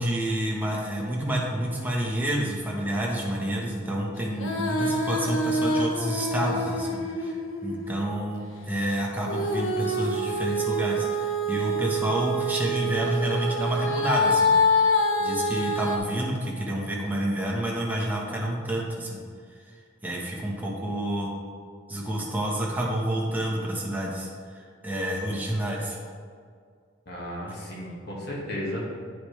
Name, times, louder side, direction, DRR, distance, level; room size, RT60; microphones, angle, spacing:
voice 1, 0.0-7.3 7.6-14.9 15.2-19.2 20.0-21.3 21.9-24.3 24.8-26.0, right 1 dB, 10° right, -3 dB, 1.2 m, -29 dB
Female singing, 4.3-8.1 9.3-16.0, left 1 dB, 85° left, 0.9 m, -26 dB
voice 2, 27.1-28.8, equal, 55° left, -4 dB, 1.8 m, -34 dB
10.0 x 5.0 x 3.2 m, 2.1 s
head